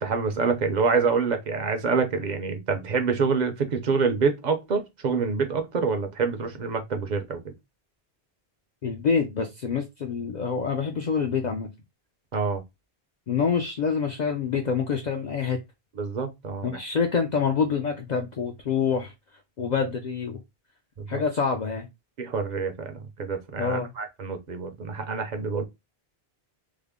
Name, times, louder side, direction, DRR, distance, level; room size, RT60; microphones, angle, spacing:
voice 1, 0.0-7.5 12.3-12.6 16.0-16.8 21.0-21.2 22.2-25.6, right 5 dB, 50° right, 0.7 m, -26 dB
voice 2, 8.8-11.7 13.3-15.6 16.6-19.1 19.6-20.4 21.1-21.9 23.6-23.9, left 6 dB, 55° left, 0.6 m, -26 dB
3.5 x 2.0 x 3.5 m
omnidirectional pair, 1.1 m